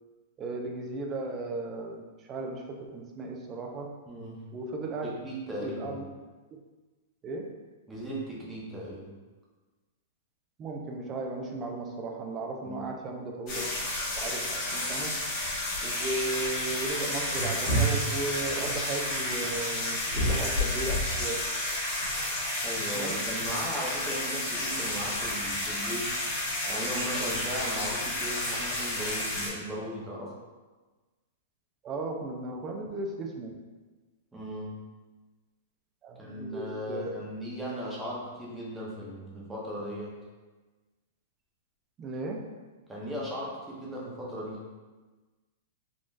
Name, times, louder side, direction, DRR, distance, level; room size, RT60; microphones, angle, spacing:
voice 1, 0.4-2.0 2.3-4.0 4.5-5.1 5.6-6.0 7.2-7.5 10.6-13.7 14.2-15.2 15.8-21.5 22.9-23.1 31.8-33.5 36.0-37.2 42.0-42.5, right 2 dB, 25° right, 1 dB, 0.5 m, -35 dB
voice 2, 4.1-4.5 5.0-6.0 7.9-9.1 12.6-12.9 22.6-26.2 26.7-30.3 34.3-34.8 36.2-40.2 42.9-44.7, equal, 10° right, -5 dB, 0.8 m, -37 dB
sound 1, 13.5-29.5, left 1 dB, 35° left, 1.4 m, -30 dB
3.7 x 2.4 x 2.5 m, 1.3 s
hypercardioid pair, 130°, 0 cm